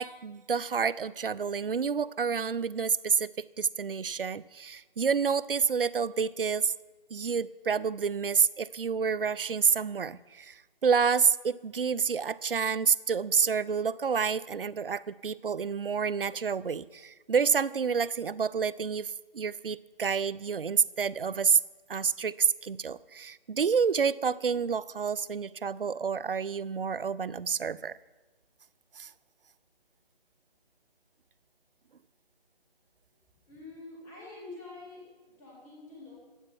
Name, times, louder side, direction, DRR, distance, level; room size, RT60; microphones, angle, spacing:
voice 1, 0.0-6.7 7.1-21.6 21.9-28.0 29.0-29.1, right 6 dB, 65° right, 20 dB, 0.5 m, -28 dB
voice 2, 33.5-36.2, left 3 dB, 10° left, -4 dB, 2.0 m, -46 dB
14.5 x 8.8 x 6.0 m, 1.2 s
figure-of-eight pair, 155°, 30 cm